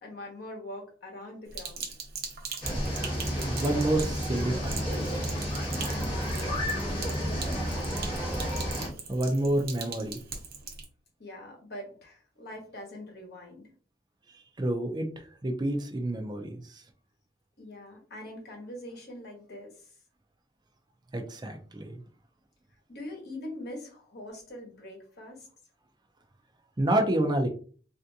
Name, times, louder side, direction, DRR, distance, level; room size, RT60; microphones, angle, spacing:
voice 1, 0.0-1.9 5.7-7.4 11.2-13.7 17.6-19.9 22.9-25.5, left 1 dB, 60° left, 0 dB, 1.1 m, -43 dB
Sink (filling or washing), 1.5-10.8, right 5 dB, 55° right, 0.7 m, -41 dB
sound 1, 2.6-8.9, equal, 30° left, 1.2 m, -31 dB
voice 2, 3.5-4.8 9.1-10.2 14.3-16.8 21.1-22.0 26.8-27.5, right 1 dB, 25° right, 4 dB, 0.4 m, -29 dB
3.3 x 2.6 x 2.7 m, 0.41 s
head